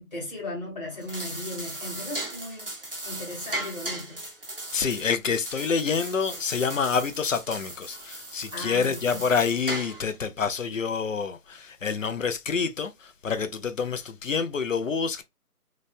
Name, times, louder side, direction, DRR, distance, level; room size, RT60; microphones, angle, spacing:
voice 1, 0.0-2.7 3.0-4.2 8.5-9.3, left 1 dB, 25° left, 1.4 m, -37 dB
sound 1, 0.9-10.2, right 1 dB, 40° right, 0.6 m, -37 dB
voice 2, 4.7-15.2, left 5 dB, 55° left, 0.5 m, -27 dB
3.0 x 2.2 x 2.5 m
figure-of-eight pair, 165°, 47 cm